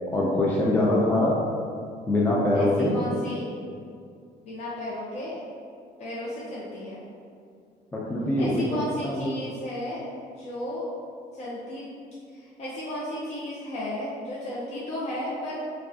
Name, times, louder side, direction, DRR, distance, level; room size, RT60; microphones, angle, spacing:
voice 1, 0.1-1.4 2.1-3.0 7.9-9.3, left 1 dB, 10° left, -5 dB, 0.4 m, -23 dB
voice 2, 2.5-3.5 4.4-5.4 6.0-7.0 8.4-10.0 10.4-10.9 11.3-11.9 12.3-15.6, left 1 dB, 40° left, -8 dB, 0.7 m, -34 dB
4.5 x 2.3 x 2.7 m, 2.3 s
cardioid pair, 110°, 17 cm